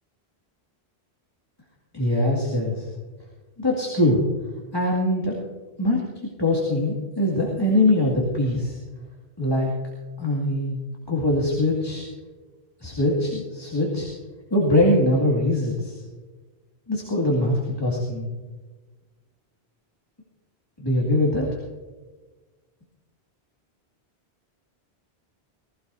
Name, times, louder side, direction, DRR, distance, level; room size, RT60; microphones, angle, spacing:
voice 1, 1.9-2.9 3.6-4.2 4.7-5.4 5.8-6.0 6.4-8.8 9.4-9.7 10.2-10.8 11.1-12.1 12.8-14.1 14.5-16.0 16.9-18.3 20.8-21.5, left 1 dB, 20° left, -4 dB, 2.4 m, -22 dB
20.5 x 16.0 x 2.7 m, 1.3 s
omnidirectional pair, 1.1 m